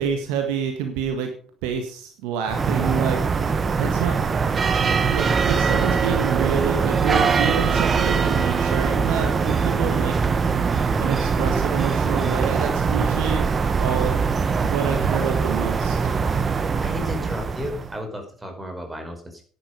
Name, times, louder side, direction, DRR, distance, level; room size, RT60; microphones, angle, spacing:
voice 1, 0.0-1.3 1.6-3.2 3.8-4.2 5.1-10.2 11.0-13.4 13.8-14.2 14.6-16.0, right 7 dB, 65° right, 6 dB, 1.7 m, -27 dB
sound 1, 2.5-18.0, right 5 dB, 35° right, 1.4 m, -22 dB
voice 2, 16.8-19.4, equal, 15° right, 5 dB, 4.7 m, -33 dB
11.0 x 10.5 x 5.2 m, 0.43 s
figure-of-eight pair, 55°, 0 cm